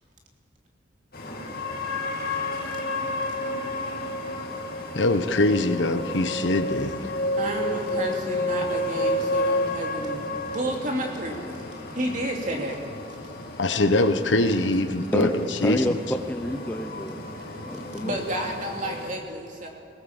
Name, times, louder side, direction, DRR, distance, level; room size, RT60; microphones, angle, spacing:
sound 1, 1.1-19.1, left 1 dB, 55° left, 2.6 m, -31 dB
voice 1, 4.9-7.1 13.6-15.8, left 2 dB, 85° left, 9 dB, 1.2 m, -23 dB
voice 2, 7.4-11.4 11.9-12.8 18.0-19.7, right 1 dB, 45° right, 1 dB, 2.9 m, -31 dB
voice 3, 15.6-16.0 16.3-17.2 17.6-18.2, left 1 dB, 10° left, 5 dB, 0.7 m, -28 dB
20.5 x 18.5 x 7.4 m, 2.6 s
head